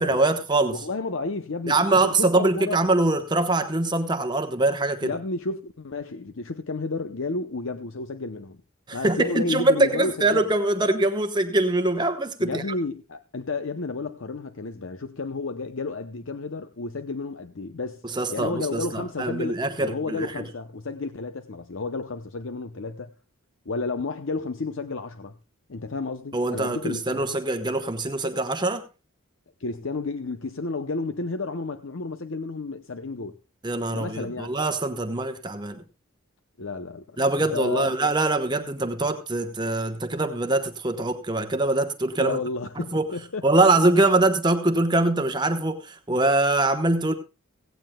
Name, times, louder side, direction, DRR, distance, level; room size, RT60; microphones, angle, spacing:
voice 1, 0.0-0.8 1.7-5.1 8.9-12.6 18.1-20.3 26.3-28.8 33.6-35.8 37.2-42.4 42.8-43.1 43.4-47.1, right 2 dB, 20° right, 1.0 m, -23 dB
voice 2, 0.7-2.8 5.0-8.6 8.9-10.4 12.4-18.0 18.3-23.1 23.7-25.4 25.7-27.2 29.6-33.4 33.9-34.5 36.6-37.9 42.2-43.6, left 3 dB, 60° left, 0.7 m, -32 dB
16.5 x 16.5 x 2.3 m
head